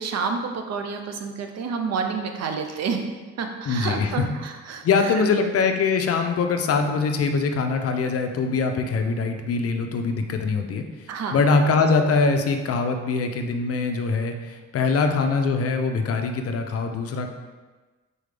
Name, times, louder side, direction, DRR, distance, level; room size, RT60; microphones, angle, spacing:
voice 1, 0.0-3.0 3.4-5.3 11.1-11.4, right 5 dB, 60° right, 5 dB, 0.6 m, -29 dB
voice 2, 3.7-4.1 4.8-10.8 11.3-17.3, left 4 dB, 50° left, 5 dB, 0.5 m, -23 dB
4.1 x 3.6 x 3.3 m, 1.3 s
cardioid pair, 90°, 30 cm